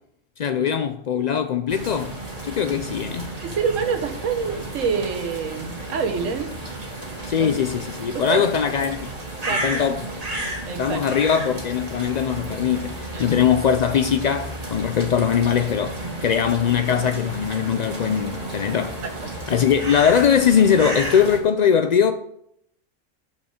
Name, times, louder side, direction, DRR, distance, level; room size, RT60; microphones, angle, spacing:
voice 1, 0.4-2.1 2.4-3.4 7.3-9.0 9.6-10.0 10.8-19.0 19.5-22.1, left 8 dB, 80° left, 0.3 m, -21 dB
sound 1, 1.7-21.4, right 1 dB, 30° right, 1.8 m, -33 dB
voice 2, 3.4-6.5 7.4-7.5 8.1-8.5 9.5-9.8 10.7-11.0 13.1-13.3 19.0-19.3, right 6 dB, 80° right, 1.5 m, -26 dB
6.5 x 6.4 x 6.4 m
omnidirectional pair, 1.3 m